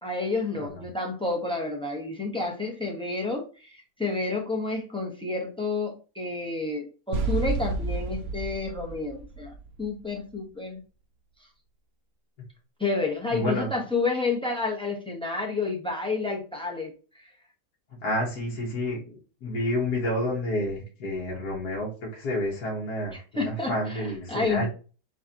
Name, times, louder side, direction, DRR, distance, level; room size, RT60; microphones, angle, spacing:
voice 1, 0.0-9.5 9.8-10.8 12.8-17.2 23.1-24.7, left 3 dB, 5° left, 1 dB, 0.7 m, -30 dB
sound 1, 7.1-10.1, right 3 dB, 65° right, 1.1 m, -30 dB
voice 2, 13.3-13.7 18.0-19.1 19.4-24.7, left 1 dB, 70° left, -3 dB, 1.8 m, -29 dB
7.4 x 2.6 x 2.7 m, 0.35 s
omnidirectional pair, 1.8 m